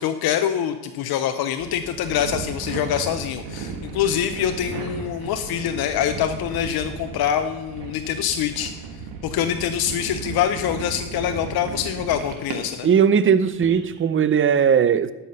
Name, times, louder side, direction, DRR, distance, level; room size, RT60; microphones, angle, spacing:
voice 1, 0.0-8.7 9.2-12.9, left 9 dB, 60° left, 8 dB, 0.7 m, -25 dB
sound 1, 1.6-13.0 13.4-14.0, right 5 dB, 75° right, 1.6 m, -35 dB
voice 2, 12.8-15.1, right 7 dB, 30° right, 14 dB, 0.6 m, -18 dB
12.5 x 5.7 x 5.5 m, 1.2 s
supercardioid pair, 60°, 42 cm